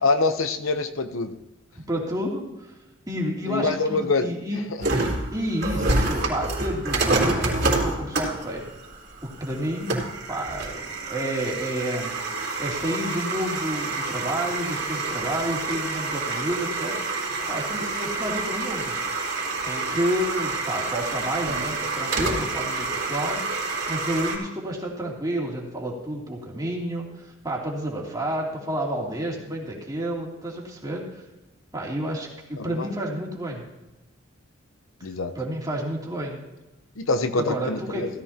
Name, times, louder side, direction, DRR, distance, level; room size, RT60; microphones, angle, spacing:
voice 1, 0.0-1.4 3.4-4.3 32.6-32.9 35.0-35.3 37.0-38.1, left 3 dB, 75° left, 8 dB, 0.8 m, -25 dB
voice 2, 1.7-2.7 3.1-4.6 5.3-8.6 9.2-18.9 19.6-31.2 31.7-33.7 35.3-36.4 37.4-38.0, right 1 dB, 20° right, -3 dB, 2.9 m, -30 dB
sound 1, 4.8-24.4, right 3 dB, 55° right, 3.6 m, -28 dB
17.0 x 13.5 x 2.9 m, 1.0 s
head